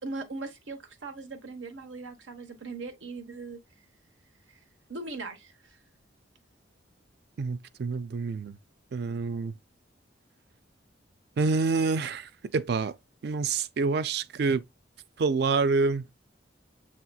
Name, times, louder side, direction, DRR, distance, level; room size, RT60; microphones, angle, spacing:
voice 1, 0.0-3.6 4.5-4.6 4.9-5.5, right 3 dB, 90° right, 1.0 m, -39 dB
voice 2, 7.4-8.6 8.9-9.5 11.4-12.9 13.2-14.6 15.2-16.1, right 4 dB, 55° right, 0.4 m, -27 dB
6.9 x 2.9 x 2.2 m
head